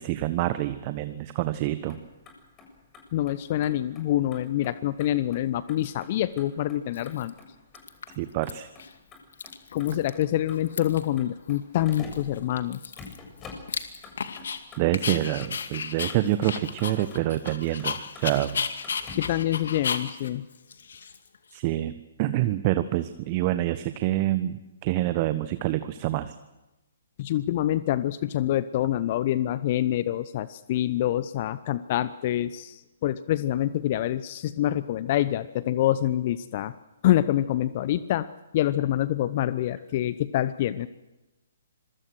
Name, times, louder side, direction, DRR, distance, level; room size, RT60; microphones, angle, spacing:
voice 1, 0.0-2.0 8.2-8.7 14.8-18.7 21.5-21.9 22.2-26.3, right 15 dB, 35° right, 11 dB, 1.2 m, -27 dB
Motor vehicle (road), 1.7-19.5, left 4 dB, 20° left, 7.3 m, -49 dB
voice 2, 3.1-7.3 9.7-12.9 19.2-20.5 27.2-36.7 37.0-38.3 38.5-40.9, left 13 dB, 40° left, 15 dB, 0.9 m, -26 dB
Dog, 6.2-6.3 6.9-7.4 7.7-8.5 8.8-8.9 9.2-10.2 10.5-11.1 11.5-11.6 11.9-14.6 14.9-21.6, left 6 dB, 60° left, 2.3 m, -34 dB
27.0 x 23.0 x 6.4 m, 1.0 s
figure-of-eight pair, 125°, 0 cm